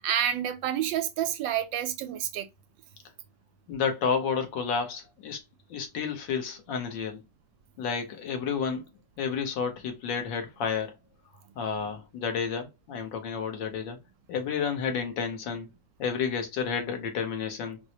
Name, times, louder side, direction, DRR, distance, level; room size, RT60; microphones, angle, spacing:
voice 1, 0.0-2.5, right 10 dB, 80° right, 1.3 m, -29 dB
voice 2, 3.7-5.4 5.7-7.2 7.8-8.8 9.2-10.9 11.5-14.0 14.3-15.7 16.0-17.8, left 6 dB, 75° left, 1.6 m, -31 dB
4.5 x 2.0 x 2.7 m
omnidirectional pair, 2.1 m